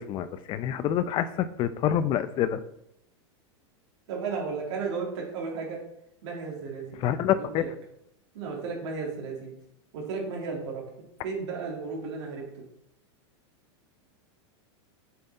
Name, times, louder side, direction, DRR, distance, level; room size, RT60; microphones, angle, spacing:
voice 1, 0.0-2.6 7.0-7.6, left 10 dB, 35° left, 13 dB, 0.4 m, -27 dB
voice 2, 4.1-5.8 6.2-7.0 7.6-7.7 8.3-9.5 9.9-10.8 11.2-12.4, right 4 dB, 75° right, -1 dB, 2.2 m, -34 dB
6.7 x 4.1 x 3.9 m, 0.79 s
supercardioid pair, 130°, 15 cm